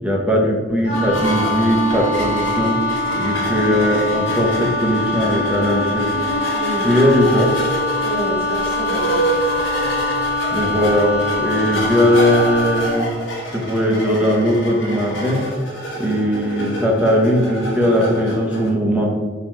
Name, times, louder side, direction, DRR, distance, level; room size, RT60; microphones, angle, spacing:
voice 1, 0.0-2.8 3.1-6.1 6.8-7.5 10.5-11.1 11.4-13.1 13.5-15.4 16.0-19.1, equal, 5° right, -2 dB, 0.7 m, -18 dB
Wind instrument woodwind instrument, 0.8-12.9, left 2 dB, 60° left, 1.5 m, -23 dB
sound 1, 0.9-18.7, right 1 dB, 85° left, 1.1 m, -28 dB
voice 2, 6.5-6.9 8.0-9.6, equal, 25° left, -12 dB, 1.4 m, -28 dB
4.0 x 3.0 x 4.2 m, 1.4 s
head